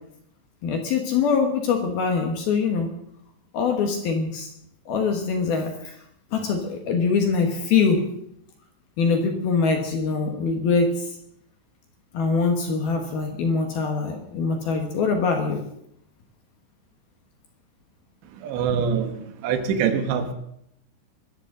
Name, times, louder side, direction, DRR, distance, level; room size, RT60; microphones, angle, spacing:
voice 1, 0.6-2.9 3.5-4.5 4.9-6.0 6.3-8.1 9.0-11.1 12.1-15.6, left 5 dB, 65° left, 3 dB, 2.8 m, -23 dB
voice 2, 18.4-19.1 19.4-20.3, right 7 dB, 70° right, 7 dB, 3.2 m, -23 dB
23.5 x 13.5 x 3.9 m, 0.75 s
omnidirectional pair, 5.7 m